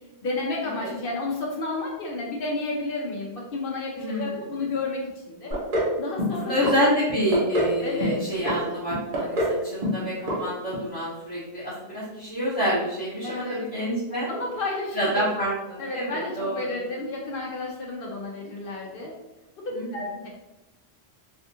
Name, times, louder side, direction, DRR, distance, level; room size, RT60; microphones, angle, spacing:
voice 1, 0.2-5.5 6.0-6.5 7.8-8.2 13.2-13.6 14.3-15.2 15.8-19.1 19.9-20.3, left 2 dB, 65° left, -1 dB, 0.8 m, -31 dB
voice 2, 3.9-4.2 6.4-14.3 14.9-16.8 19.7-20.1, equal, 25° left, -10 dB, 0.8 m, -27 dB
sound 1, 5.5-5.9 6.2-6.8 7.1-7.7 8.0-8.6 8.9-9.6 9.8-10.0 10.3-10.4 10.7-10.8, equal, 40° right, 0.8 m, -25 dB
3.4 x 2.4 x 2.6 m, 1.0 s
omnidirectional pair, 1.1 m